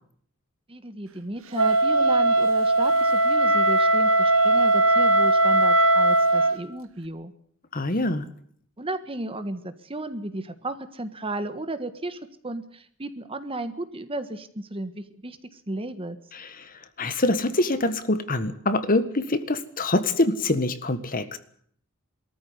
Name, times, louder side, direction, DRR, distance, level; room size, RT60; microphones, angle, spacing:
voice 1, 0.7-7.3 8.8-16.2, right 2 dB, 25° right, 10 dB, 1.5 m, -34 dB
Wind instrument woodwind instrument, 1.5-6.6, right 2 dB, 70° right, 2.0 m, -19 dB
voice 2, 7.7-8.2 16.4-16.6 17.0-21.4, left 2 dB, 40° left, 11 dB, 1.6 m, -25 dB
22.5 x 14.0 x 9.7 m, 0.62 s
head